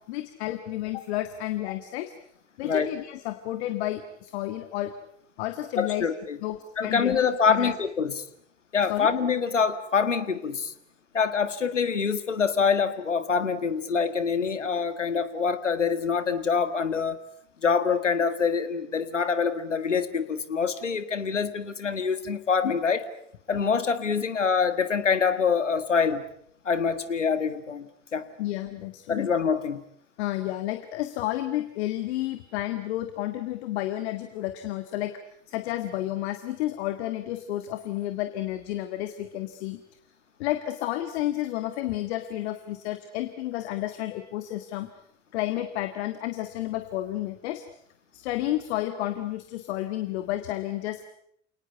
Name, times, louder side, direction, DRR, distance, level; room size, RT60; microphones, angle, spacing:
voice 1, 0.1-2.1 2.6-4.9 5.4-6.1 6.4-7.7 8.9-9.1 28.4-29.3 30.2-35.2 35.5-39.8 40.4-44.9 45.3-47.6 48.1-51.0, left 14 dB, 65° left, 9 dB, 1.8 m, -31 dB
voice 2, 5.8-6.4 6.8-8.2 8.7-10.7 11.1-17.2 17.6-23.1 23.5-26.2 26.7-28.3 29.1-29.8, left 6 dB, 85° left, 12 dB, 1.8 m, -25 dB
28.5 x 19.5 x 9.4 m, 0.69 s
figure-of-eight pair, 70°, 36 cm